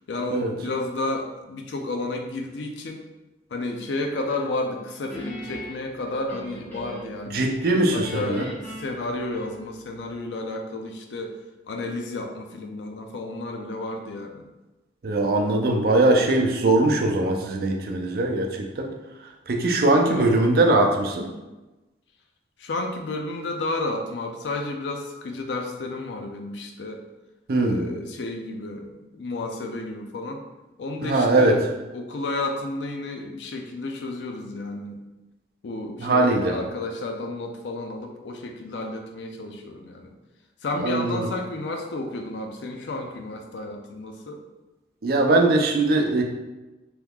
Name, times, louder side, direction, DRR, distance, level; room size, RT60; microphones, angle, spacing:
voice 1, 0.1-3.0 3.5-7.5 7.9-11.4 11.7-14.5 20.0-20.5 22.6-27.0 27.6-30.5 30.8-31.6 31.9-35.0 35.6-40.1 40.6-44.4, left 2 dB, 85° left, 3 dB, 0.5 m, -32 dB
Guitar, 5.1-7.2 7.6-9.9, equal, 10° left, 1.1 m, -40 dB
voice 2, 7.3-8.5 15.0-18.9 19.5-21.3 27.5-27.9 31.0-31.5 36.0-36.5 40.8-41.3 45.0-46.2, right 2 dB, 55° right, 2 dB, 0.5 m, -21 dB
3.0 x 2.3 x 3.5 m, 1.1 s
head